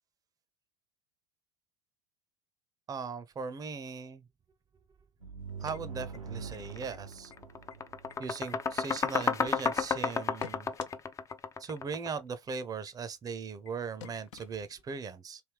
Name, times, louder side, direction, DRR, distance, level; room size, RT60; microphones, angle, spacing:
voice 1, 2.9-4.2 5.6-7.3 8.2-10.7 11.6-15.4, right 5 dB, 20° right, 0.6 m, -39 dB
sound 1, 5.2-8.8, right 5 dB, 90° right, 0.7 m, -44 dB
sound 2, 5.4-6.6 6.9-7.0 7.3-7.8 8.1-9.7 10.1-11.0 11.3-11.4 11.7-11.8 12.1-12.2 12.5-12.6 12.9-13.0 13.3-13.4 13.7-13.8 14.0-15.0, left 10 dB, 70° left, 0.5 m, -50 dB
sound 3, 6.7-6.9 7.2-12.2, left 5 dB, 20° left, 0.4 m, -31 dB
3.3 x 2.6 x 3.3 m
figure-of-eight pair, 70°, 17 cm